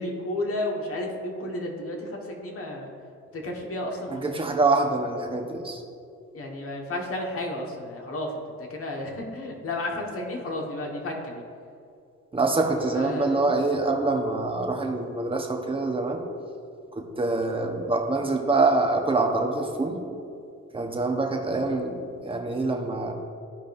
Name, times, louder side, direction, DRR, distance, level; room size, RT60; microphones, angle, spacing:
voice 1, 0.0-2.9 3.3-4.4 6.3-8.3 8.6-11.4 12.9-13.5, left 1 dB, 45° left, 0 dB, 1.6 m, -32 dB
voice 2, 4.1-5.8 12.3-16.2 16.9-20.0 20.7-23.1, right 3 dB, 15° right, 2 dB, 1.1 m, -25 dB
14.5 x 5.1 x 2.7 m, 2.4 s
cardioid pair, 90°, 30 cm